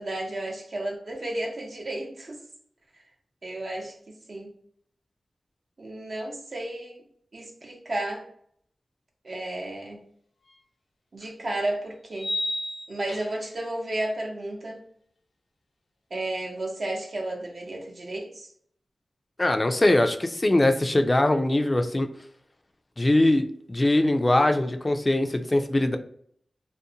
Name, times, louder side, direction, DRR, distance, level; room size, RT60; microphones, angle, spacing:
voice 1, 0.0-2.4 3.4-4.0 4.3-4.5 5.8-7.0 7.3-8.3 9.2-10.0 11.1-12.3 12.9-14.8 16.1-18.5, right 1 dB, 60° right, 0 dB, 0.7 m, -32 dB
sound 1, 10.5-10.6 12.1-13.6, left 1 dB, 90° left, 0.6 m, -32 dB
voice 2, 19.4-22.1 23.0-26.0, left 1 dB, 25° left, 7 dB, 0.3 m, -22 dB
2.6 x 2.1 x 2.7 m, 0.62 s
cardioid pair, 60°, 0 cm